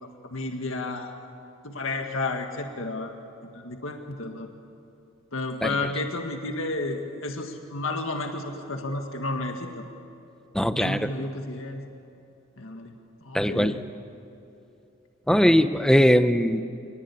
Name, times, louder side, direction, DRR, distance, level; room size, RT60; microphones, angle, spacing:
voice 1, 0.0-1.1 1.6-3.1 3.5-4.5 5.3-9.9 10.7-11.8 12.6-12.9 13.2-13.9, left 2 dB, 75° left, 4 dB, 1.8 m, -32 dB
voice 2, 10.5-11.1 13.3-13.8 15.3-16.6, equal, 5° left, 10 dB, 0.7 m, -20 dB
27.5 x 19.5 x 9.7 m, 2.8 s
head